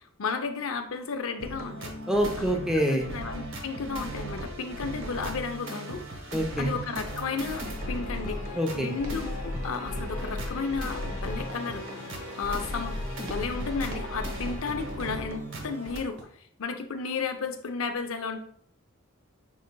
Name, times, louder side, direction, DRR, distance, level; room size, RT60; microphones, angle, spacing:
voice 1, 0.2-1.9 2.4-2.5 2.9-6.3 6.6-7.6 7.9-12.0 12.3-16.2 16.6-18.4, left 5 dB, 75° left, 6 dB, 0.6 m, -33 dB
sound 1, 1.4-16.0, equal, 60° right, 0.9 m, -36 dB
voice 2, 2.1-3.1 6.3-6.7 8.5-8.9, equal, 5° right, 2 dB, 0.5 m, -26 dB
sound 2, 7.0-15.6, left 2 dB, 35° left, 0.8 m, -44 dB
sound 3, 8.3-8.6 8.9-9.2 9.5-9.9 10.2-10.5 10.8-11.1 11.4-11.7 12.0-12.4 12.6-12.9 13.2-13.5 13.8-14.7 15.0-15.3 15.6-15.9 16.2-16.3, right 1 dB, 90° right, 1.3 m, -46 dB
6.2 x 3.8 x 2.2 m, 0.62 s
head